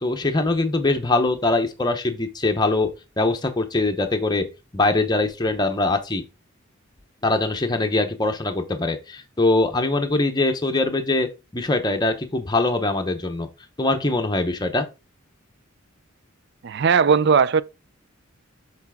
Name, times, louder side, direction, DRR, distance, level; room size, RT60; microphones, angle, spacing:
voice 1, 0.0-2.9 3.2-4.5 4.7-6.2 7.2-11.3 11.5-13.5 13.8-14.9, left 2 dB, 20° left, 0.8 m, -22 dB
voice 2, 16.6-17.6, right 6 dB, 55° right, 0.4 m, -17 dB
7.2 x 4.1 x 3.5 m
head